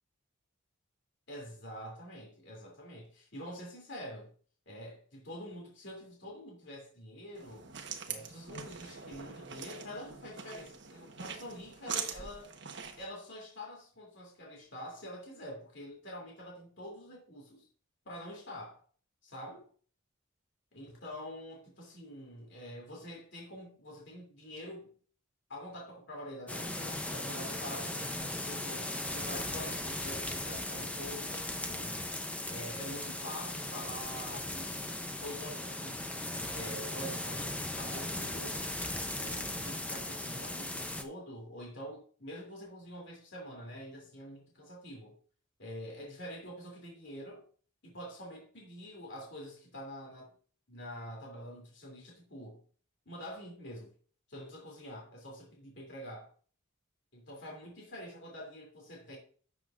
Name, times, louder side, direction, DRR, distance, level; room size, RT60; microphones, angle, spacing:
voice 1, 1.3-4.3 4.7-7.7 8.1-12.6 13.0-17.7 18.0-18.8 19.3-19.6 20.7-25.0 25.5-32.0 32.5-34.9 35.2-36.0 36.5-38.7 39.1-45.1 45.6-47.5 47.8-50.3 50.7-52.6 53.0-53.9 54.3-56.3 57.1-59.2, equal, 60° left, 3.1 m, -46 dB
sound 1, 7.3-13.0, right 6 dB, 60° right, 1.3 m, -43 dB
sound 2, 26.5-41.0, left 1 dB, 5° left, 0.7 m, -38 dB
12.0 x 7.5 x 2.6 m
head